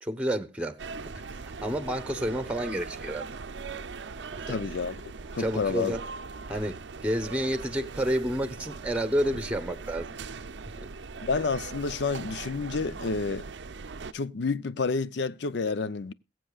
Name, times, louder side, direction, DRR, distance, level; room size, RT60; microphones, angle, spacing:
voice 1, 0.0-3.3 4.3-4.6 5.4-6.0 6.5-10.2 10.8-10.9, equal, 5° right, 0.9 m, -30 dB
sound 1, 0.8-14.1, right 4 dB, 70° right, 0.6 m, -40 dB
voice 2, 4.5-6.0 11.2-13.5 14.1-16.1, left 4 dB, 65° left, 0.6 m, -30 dB
21.5 x 7.6 x 2.3 m
head